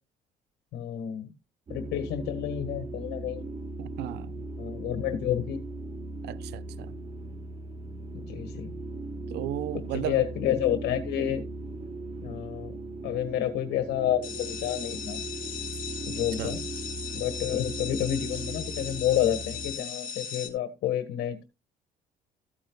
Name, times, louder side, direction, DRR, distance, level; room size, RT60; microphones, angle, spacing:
voice 1, 0.7-1.3 1.7-3.4 4.6-5.6 8.1-8.7 9.9-11.4 12.2-12.7 13.0-15.2 16.1-16.6 17.1-21.4, left 11 dB, 80° left, 1.7 m, -29 dB
sound 1, 1.7-19.7, right 2 dB, 35° right, 1.1 m, -38 dB
voice 2, 3.8-4.5 6.2-6.9 9.3-10.2 16.4-16.6, right 14 dB, 80° right, 0.7 m, -35 dB
sound 2, 14.2-20.5, left 7 dB, 55° left, 2.1 m, -37 dB
14.5 x 8.9 x 2.4 m
cardioid pair, 110°, 17 cm